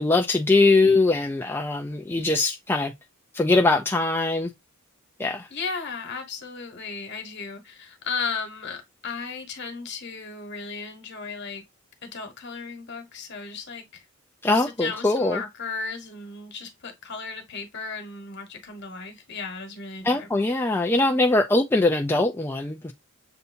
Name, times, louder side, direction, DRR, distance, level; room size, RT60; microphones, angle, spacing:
voice 1, 0.0-2.9 3.3-4.5 5.2-5.5 14.4-15.4 20.0-22.9, left 2 dB, 10° left, 0.4 m, -22 dB
voice 2, 5.5-11.6 12.0-14.0 14.5-20.5, left 4 dB, 55° left, 1.2 m, -35 dB
6.8 x 2.7 x 2.6 m
head